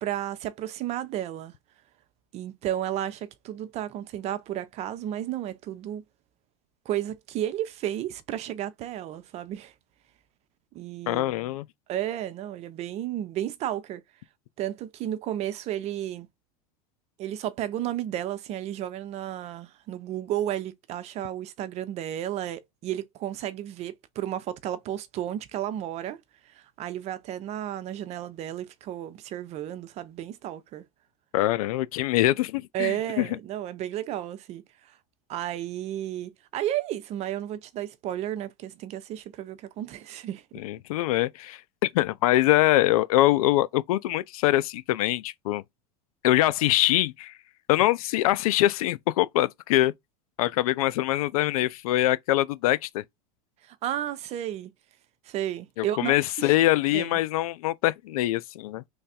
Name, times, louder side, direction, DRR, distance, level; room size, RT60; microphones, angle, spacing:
voice 1, 0.0-1.5 2.3-6.0 6.9-9.7 10.7-11.5 11.9-14.0 14.6-16.3 17.2-26.2 26.5-30.8 32.7-34.6 35.3-40.4 53.6-54.7 55.3-56.5 56.9-57.2, right 12 dB, 40° right, 0.5 m, -33 dB
voice 2, 11.1-11.6 31.3-33.3 40.6-45.6 46.2-47.3 47.7-49.9 50.4-53.0 55.8-58.8, left 15 dB, 85° left, 0.4 m, -24 dB
3.3 x 2.3 x 4.1 m
supercardioid pair, 130°, 18 cm